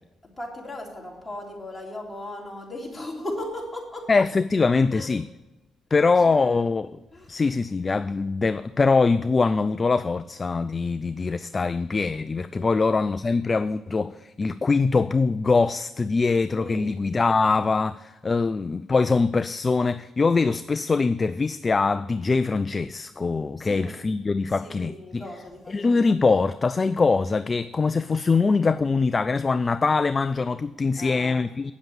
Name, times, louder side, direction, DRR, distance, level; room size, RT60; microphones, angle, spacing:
voice 1, 0.4-4.1 4.9-5.1 6.0-6.7 7.1-7.4 12.5-12.8 16.5-16.9 23.6-23.9 24.6-26.1 31.0-31.4, left 1 dB, 15° left, 3.5 m, -37 dB
voice 2, 4.1-5.3 5.9-6.9 7.3-25.2 25.7-31.7, left 4 dB, 30° left, 0.3 m, -23 dB
9.0 x 7.3 x 8.0 m
cardioid pair, 90°, 0 cm